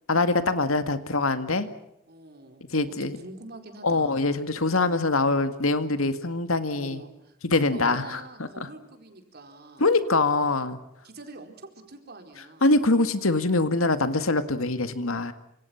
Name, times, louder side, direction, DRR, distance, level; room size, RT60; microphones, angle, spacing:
voice 1, 0.1-1.7 2.7-3.2 3.8-7.0 7.4-8.5 9.8-10.8 12.6-15.3, left 3 dB, 85° left, 10 dB, 2.0 m, -24 dB
voice 2, 2.1-4.2 6.7-7.4 7.7-9.9 11.0-12.7, right 2 dB, 50° right, 5 dB, 4.3 m, -45 dB
29.0 x 26.0 x 5.9 m, 0.82 s
head